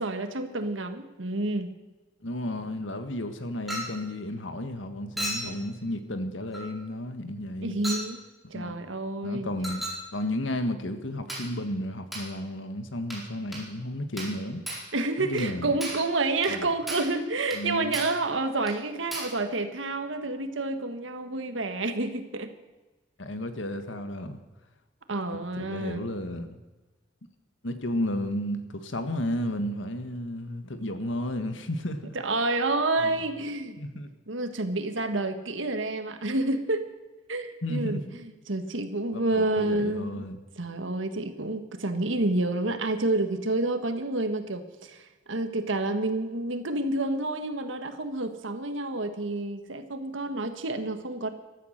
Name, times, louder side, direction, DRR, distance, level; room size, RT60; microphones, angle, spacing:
voice 1, 0.0-1.7 5.4-5.6 7.6-8.2 8.5-9.5 14.9-22.5 25.1-26.1 32.1-33.8 34.3-36.8 37.3-40.3 40.6-51.3, right 2 dB, 90° right, 8 dB, 1.6 m, -29 dB
voice 2, 2.2-7.8 8.5-8.7 9.2-9.8 10.1-14.6 15.2-15.8 16.5-16.7 17.5-18.0 23.2-24.4 25.3-26.6 27.6-32.1 33.0-33.2 33.8-34.1 37.6-38.2 39.1-40.4, left 1 dB, 85° left, 8 dB, 1.7 m, -33 dB
Chink clink, 3.7-4.0 5.2-5.5 6.5-6.7 7.8-8.1 9.6-10.1 11.3-11.5 12.1-12.3 13.1-13.3 13.5-13.7 14.2-14.4 14.7-14.9 15.4-15.5 15.8-16.1 16.4-16.6 16.9-17.2 17.5-17.6 17.9-18.2 18.7-18.8 19.1-19.4, right 1 dB, ahead, 4.7 m, -35 dB
15.0 x 13.5 x 6.6 m, 1.1 s
head